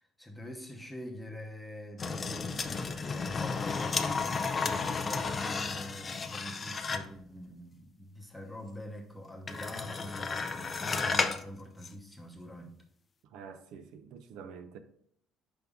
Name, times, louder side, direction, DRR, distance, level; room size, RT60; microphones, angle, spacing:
voice 1, 0.0-12.7, left 1 dB, ahead, 0.8 m, -44 dB
sound 1, 2.0-7.2 9.5-11.5 11.8-11.9, left 4 dB, 20° left, 0.4 m, -33 dB
voice 2, 13.3-14.8, right 6 dB, 70° right, 0.6 m, -47 dB
5.9 x 5.2 x 3.5 m
cardioid pair, 175°, 0 cm